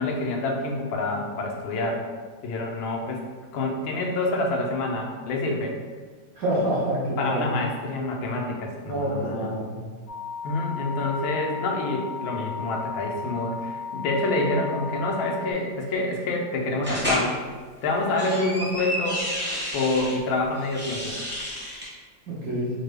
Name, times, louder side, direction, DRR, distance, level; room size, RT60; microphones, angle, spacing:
voice 1, 0.0-2.0 2.4-3.2 3.5-5.7 7.2-9.5 10.4-17.3 17.8-19.2 19.7-21.2, left 2 dB, 90° left, 0 dB, 1.4 m, -27 dB
voice 2, 6.4-7.5 8.9-9.7 22.3-22.7, right 1 dB, 60° right, -5 dB, 1.1 m, -27 dB
sound 1, 10.1-15.5, left 5 dB, 70° left, 1.2 m, -35 dB
sound 2, 16.8-17.3 17.9-20.1 20.6-21.9, equal, 10° right, 0.7 m, -30 dB
5.1 x 2.2 x 3.2 m, 1.5 s
omnidirectional pair, 2.1 m